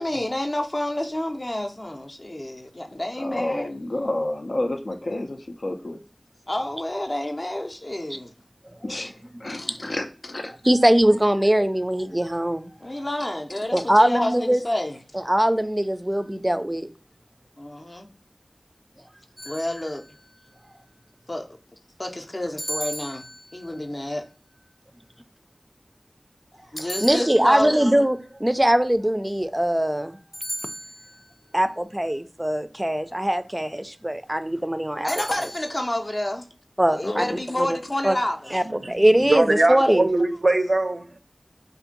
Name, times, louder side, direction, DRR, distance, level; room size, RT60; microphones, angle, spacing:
voice 1, 0.0-3.7 6.5-8.3 12.8-15.0 17.6-18.1 19.4-20.0 21.3-21.5 22.0-23.3 23.5-24.3 26.7-27.7 35.0-36.5 36.9-38.5, left 1 dB, 45° left, 0.5 m, -29 dB
voice 2, 3.2-6.0 8.8-10.5 37.0-37.4, left 1 dB, 90° left, 0.5 m, -30 dB
voice 3, 10.6-12.7 13.7-14.6 15.1-16.9 26.8-30.2 31.5-35.1 36.8-37.2 37.6-37.8 38.0-38.2 38.5-40.1, right 1 dB, 20° right, 0.3 m, -21 dB
sound 1, 19.4-20.3 22.6-23.8 26.8-27.8 30.3-31.3 35.1-35.9, equal, 10° left, 0.8 m, -36 dB
voice 4, 38.6-41.2, right 2 dB, 80° right, 0.5 m, -22 dB
2.6 x 2.5 x 3.8 m
wide cardioid pair, 50°, 0 cm